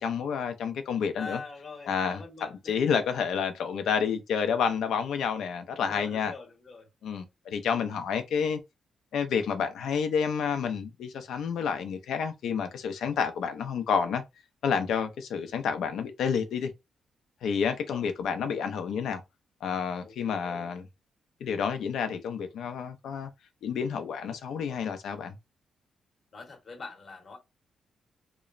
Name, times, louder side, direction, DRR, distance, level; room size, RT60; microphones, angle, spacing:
voice 1, 0.0-1.4 1.9-2.2 2.7-6.3 7.0-8.6 9.1-14.2 14.6-16.7 17.4-19.2 19.6-20.9 21.4-23.3 23.6-25.4, left 6 dB, 80° left, 0.4 m, -29 dB
voice 2, 1.2-2.8 5.9-6.9 15.3-15.5 17.8-18.0 20.0-20.7 24.2-24.3 24.7-24.8 26.3-27.4, left 3 dB, 35° left, 0.8 m, -44 dB
2.9 x 2.0 x 2.4 m
wide cardioid pair, 170°, 0 cm